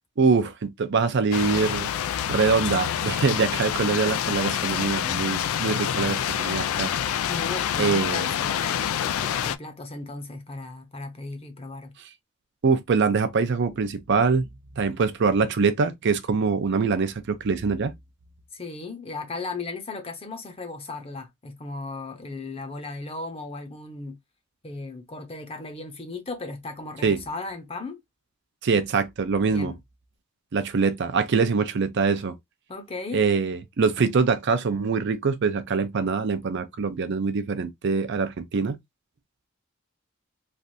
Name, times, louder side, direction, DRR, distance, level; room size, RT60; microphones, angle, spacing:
voice 1, 0.2-1.9 2.3-6.9 7.8-8.3 12.6-14.5 14.8-17.9 27.0-27.2 28.6-29.7 30.5-32.3 33.1-38.8, right 5 dB, 55° right, 0.5 m, -24 dB
sound 1, 1.3-9.6, left 9 dB, 90° left, 0.3 m, -27 dB
voice 2, 7.3-11.9 18.5-24.2 24.6-28.0 29.4-29.8 32.7-33.2, left 3 dB, 30° left, 0.7 m, -36 dB
3.3 x 2.5 x 2.6 m
head